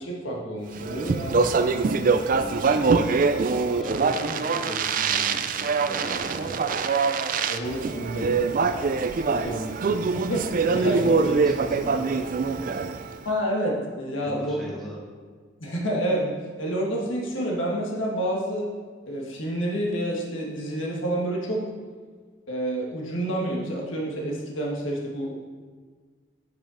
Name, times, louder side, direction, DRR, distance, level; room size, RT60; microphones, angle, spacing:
voice 1, 0.0-1.5 3.8-4.0 7.5-8.8 9.2-11.0 13.2-14.5 15.6-16.3 16.6-18.7 19.1-21.7 22.5-25.5, right 1 dB, 85° left, -1 dB, 1.6 m, -29 dB
Speech, 0.8-13.2, right 4 dB, 45° right, 0.3 m, -24 dB
voice 2, 2.3-3.1 3.7-6.5 10.6-12.8 14.2-15.0, equal, ahead, -5 dB, 1.7 m, -38 dB
7.7 x 5.4 x 4.9 m, 1.5 s
head